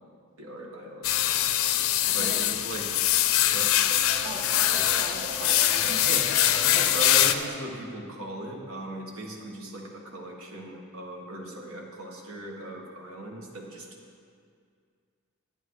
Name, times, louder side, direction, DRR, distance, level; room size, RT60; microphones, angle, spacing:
voice 1, 0.4-1.4 2.1-2.9 3.5-3.7 6.0-6.3 6.6-13.9, right 1 dB, 90° right, -1 dB, 1.8 m, -38 dB
sound 1, 1.0-7.3, left 12 dB, 75° left, 0.5 m, -23 dB
sound 2, 1.0-7.5, right 2 dB, 70° right, 1.7 m, -41 dB
voice 2, 2.0-2.4 4.2-6.1, right 1 dB, 50° right, 0 dB, 0.8 m, -40 dB
10.5 x 9.8 x 4.8 m, 2.2 s
head